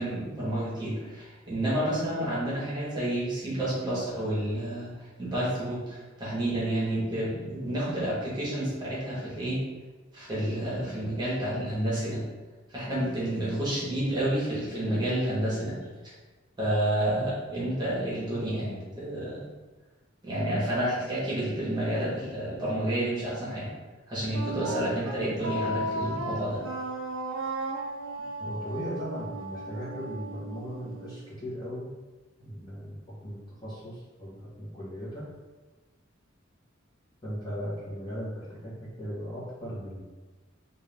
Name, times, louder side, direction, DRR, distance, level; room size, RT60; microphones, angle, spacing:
voice 1, 0.0-9.7 10.1-12.2 12.7-15.8 16.0-16.1 16.6-19.5 20.2-23.7 24.1-26.6, right 1 dB, 20° right, -8 dB, 1.3 m, -30 dB
Wind instrument woodwind instrument, 24.3-31.3, right 1 dB, 80° right, 0.6 m, -35 dB
voice 2, 28.4-31.9 32.4-33.0 33.2-35.2 37.2-40.0, equal, 20° left, -9 dB, 1.2 m, -37 dB
3.5 x 2.6 x 3.4 m, 1.3 s
head